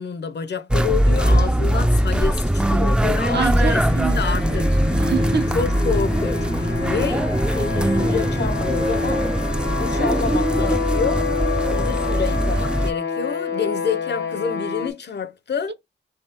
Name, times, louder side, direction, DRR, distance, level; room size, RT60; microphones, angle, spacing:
voice 1, 0.0-3.8 4.1-4.7 5.5-9.3 9.6-11.3 11.7-15.7, left 6 dB, 60° left, 0.6 m, -28 dB
sound 1, 0.7-12.9, right 1 dB, 5° right, 0.3 m, -21 dB
sound 2, 2.9-14.9, left 4 dB, 90° left, 1.0 m, -28 dB
voice 2, 3.3-5.5 15.7-15.8, right 7 dB, 60° right, 0.6 m, -28 dB
3.5 x 3.1 x 4.2 m
wide cardioid pair, 100°, 20 cm